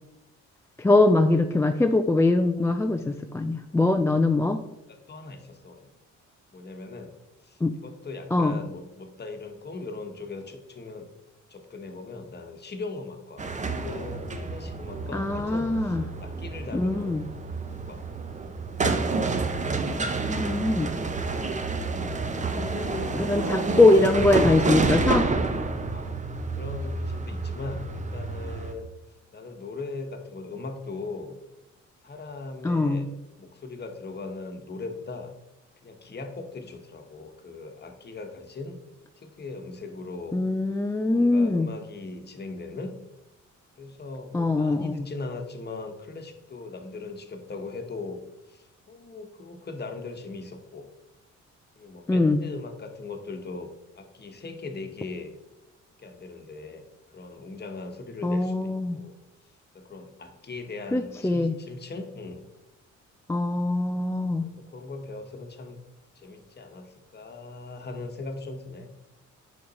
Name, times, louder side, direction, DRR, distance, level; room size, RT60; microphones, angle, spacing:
voice 1, 0.8-4.6 7.6-7.8 8.3-8.6 15.1-16.0 16.7-17.2 20.3-21.1 23.2-25.3 32.6-33.1 40.3-41.7 44.3-45.1 52.1-52.4 58.2-59.0 60.9-61.6 63.3-64.5, left 2 dB, 10° left, 6 dB, 0.3 m, -22 dB
voice 2, 4.9-5.9 6.5-7.2 7.4-11.1 11.5-17.3 17.7-18.0 18.7-18.8 20.6-20.8 22.5-23.9 25.9-26.2 26.5-28.9 29.3-31.4 32.0-33.1 33.4-35.3 35.8-38.8 39.2-40.4 41.1-42.9 43.7-48.2 48.5-50.9 51.8-53.7 53.9-55.4 56.0-59.2 59.7-62.5 64.4-65.8 66.1-68.9, left 3 dB, 35° left, 5 dB, 1.1 m, -39 dB
sound 1, 13.4-28.7, right 3 dB, 25° right, 0.7 m, -29 dB
6.7 x 5.2 x 4.1 m, 0.91 s
cardioid pair, 90°, 30 cm